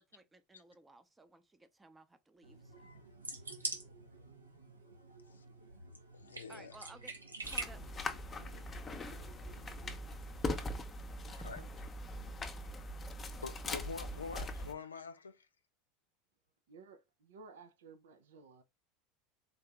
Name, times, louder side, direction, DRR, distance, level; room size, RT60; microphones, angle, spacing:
voice 1, 0.0-2.9 3.8-3.9 5.7-5.8 6.5-7.1 7.4-7.8 8.2-8.9, right 2 dB, 15° right, 0.8 m, -58 dB
sound 1, 2.4-10.0, right 3 dB, 90° right, 1.0 m, -47 dB
voice 2, 6.1-6.7 11.3-11.7 13.4-15.5, left 5 dB, 80° left, 0.5 m, -46 dB
sound 2, 7.4-14.7, left 2 dB, 25° left, 0.8 m, -41 dB
voice 3, 11.2-11.7 12.1-12.4 16.7-18.6, right 4 dB, 70° right, 0.6 m, -58 dB
3.9 x 2.8 x 3.5 m
figure-of-eight pair, 75°, 0 cm